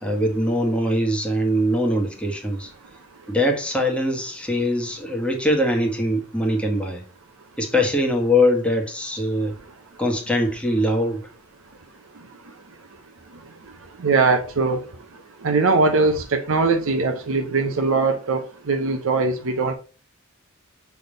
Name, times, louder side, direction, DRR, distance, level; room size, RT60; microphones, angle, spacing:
voice 1, 0.0-2.7 3.3-7.0 7.6-9.6 10.0-11.3, left 1 dB, 5° left, 1.3 m, -22 dB
voice 2, 14.0-14.8 15.4-19.7, right 3 dB, 65° right, 0.8 m, -21 dB
6.1 x 3.5 x 5.1 m
head